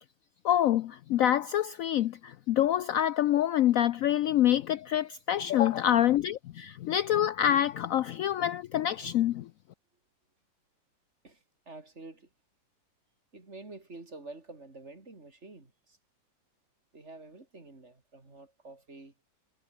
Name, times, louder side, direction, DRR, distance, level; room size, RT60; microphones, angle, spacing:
voice 1, 0.4-9.5, left 11 dB, 80° left, 0.7 m, -26 dB
voice 2, 11.2-12.3 13.3-16.0 16.9-19.1, right 2 dB, 35° right, 3.8 m, -48 dB
omnidirectional pair, 2.0 m